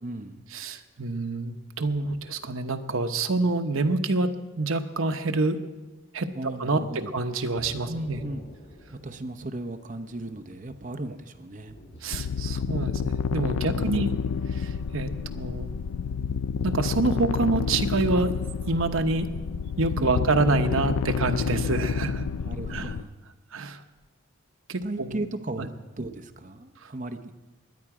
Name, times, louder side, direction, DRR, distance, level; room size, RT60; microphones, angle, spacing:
voice 1, 0.0-0.5 6.3-7.1 7.9-8.4 8.9-11.8 13.6-14.0 20.0-20.3 22.4-23.1 24.8-27.3, right 2 dB, 35° right, 7 dB, 0.8 m, -36 dB
voice 2, 0.5-5.6 6.1-6.3 6.6-8.2 12.0-14.1 14.5-15.7 16.6-18.4 18.7-19.3 19.8-22.3 22.7-22.9 23.5-23.8 24.7-25.1 25.6-25.7 26.8-26.9, right 3 dB, 75° right, 7 dB, 1.0 m, -27 dB
Thunder / Rain, 7.6-17.5, equal, 50° left, 1.6 m, -51 dB
sound 1, 12.1-23.0, left 6 dB, 80° left, 0.4 m, -29 dB
20.0 x 10.0 x 4.9 m, 1.2 s
head